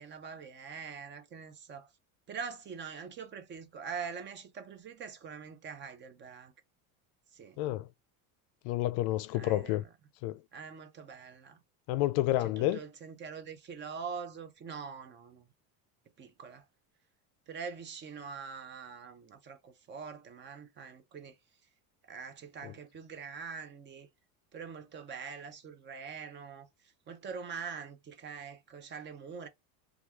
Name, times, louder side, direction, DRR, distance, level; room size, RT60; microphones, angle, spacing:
voice 1, 0.0-1.9 2.3-6.5 7.3-7.6 9.3-9.9 10.5-11.6 12.4-15.5 16.2-16.6 17.5-21.4 22.1-24.1 24.5-29.5, right 6 dB, 25° right, 0.5 m, -44 dB
voice 2, 7.6-7.9 8.6-9.8 10.2-10.4 11.9-12.8, left 15 dB, 65° left, 0.5 m, -29 dB
3.0 x 2.4 x 2.3 m
cardioid pair, 135°, 43 cm